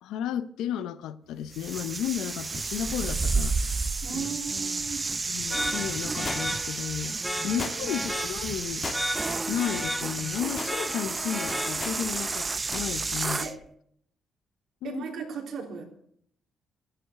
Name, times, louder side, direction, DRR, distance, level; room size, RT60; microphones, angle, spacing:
voice 1, 0.0-3.6 4.1-4.3 5.3-7.2 7.4-8.9 9.5-13.5 14.8-15.1, left 10 dB, 85° left, 0.7 m, -33 dB
sound 1, 1.5-13.5, right 3 dB, 25° right, 0.5 m, -31 dB
voice 2, 4.0-5.1 7.5-7.9 13.4-13.6 14.8-15.9, right 6 dB, 70° right, 3.1 m, -36 dB
sound 2, 5.5-12.2, equal, ahead, 1.5 m, -35 dB
sound 3, 6.3-6.8 7.6-8.1 8.8-9.3 9.7-9.9 10.3-10.8 11.5-12.0 12.7-12.9 13.2-13.3, left 4 dB, 45° left, 1.3 m, -37 dB
12.5 x 11.0 x 6.6 m
cardioid pair, 95°, 0 cm